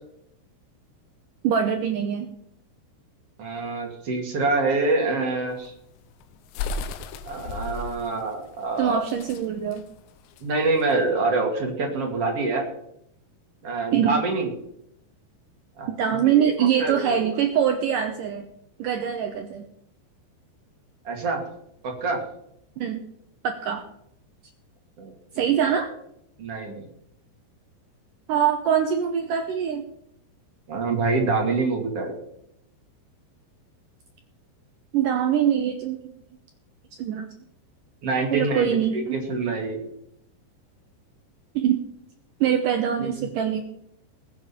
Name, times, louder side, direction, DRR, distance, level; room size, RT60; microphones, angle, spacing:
voice 1, 1.4-2.3 8.8-9.8 13.9-14.2 15.9-18.5 18.8-19.7 22.8-23.0 23.4-23.8 25.4-25.9 28.3-29.8 34.9-36.1 37.0-37.3 38.3-39.2 41.6-41.8 42.4-43.6, right 8 dB, 75° right, 4 dB, 2.0 m, -23 dB
voice 2, 3.4-5.7 7.3-9.0 10.4-12.7 13.6-14.5 15.8-17.2 21.0-21.5 21.8-22.2 25.0-25.7 26.4-26.8 30.7-32.2 38.0-38.7 38.9-39.8 43.0-43.1, right 3 dB, 40° right, 1 dB, 2.7 m, -26 dB
sound 1, 5.5-11.1, left 4 dB, 85° left, 3.1 m, -35 dB
20.0 x 8.6 x 4.4 m, 0.75 s
omnidirectional pair, 5.0 m